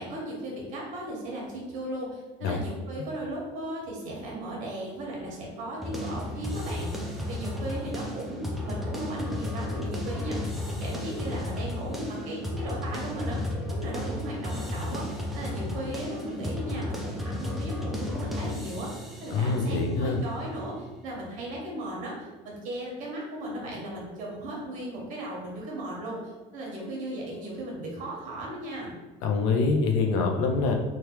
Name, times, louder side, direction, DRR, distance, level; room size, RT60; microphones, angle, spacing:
voice 1, 0.0-7.0 7.3-18.9 19.2-26.2 26.5-28.9, right 1 dB, 55° right, -3 dB, 1.0 m, -36 dB
sound 1, 5.8-21.5, left 1 dB, ahead, 0.3 m, -34 dB
voice 2, 19.3-20.2 29.2-30.7, left 4 dB, 85° left, 2 dB, 0.5 m, -25 dB
3.3 x 2.3 x 2.9 m, 1.2 s
cardioid pair, 160°, 16 cm